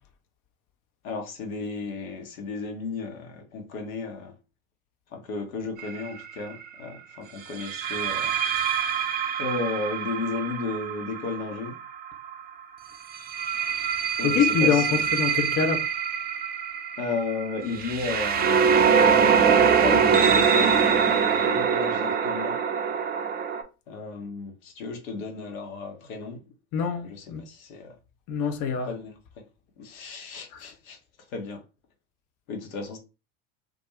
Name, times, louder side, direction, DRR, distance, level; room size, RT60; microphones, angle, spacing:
voice 1, 1.0-4.3 5.1-8.7 9.4-11.8 14.2-15.0 17.0-22.6 23.9-26.4 26.8-27.9 28.8-29.2 29.8-31.0 31.3-31.6 32.5-33.0, left 4 dB, 80° left, 0.8 m, -34 dB
sound 1, 5.8-6.1 7.6-12.3 13.1-23.6, right 7 dB, 25° right, 0.4 m, -23 dB
voice 2, 14.2-15.8 26.7-27.4 28.3-28.9 30.5-30.7, left 7 dB, 50° left, 0.6 m, -25 dB
2.3 x 2.2 x 2.9 m
hypercardioid pair, 75°, 41 cm